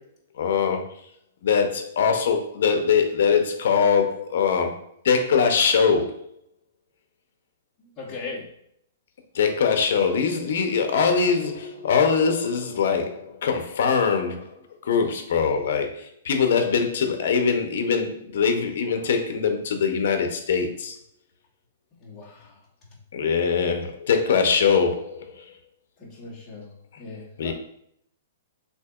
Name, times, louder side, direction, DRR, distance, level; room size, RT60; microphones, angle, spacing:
voice 1, 0.4-0.8 1.4-4.8 5.0-6.1 9.3-14.5 14.8-21.0 23.1-25.2 27.4-27.5, left 6 dB, 55° left, 5 dB, 0.7 m, -22 dB
voice 2, 7.8-8.4 22.0-22.5 26.0-27.5, left 3 dB, 15° left, -6 dB, 1.1 m, -39 dB
6.3 x 2.9 x 2.4 m, 0.70 s
hypercardioid pair, 175°, 0 cm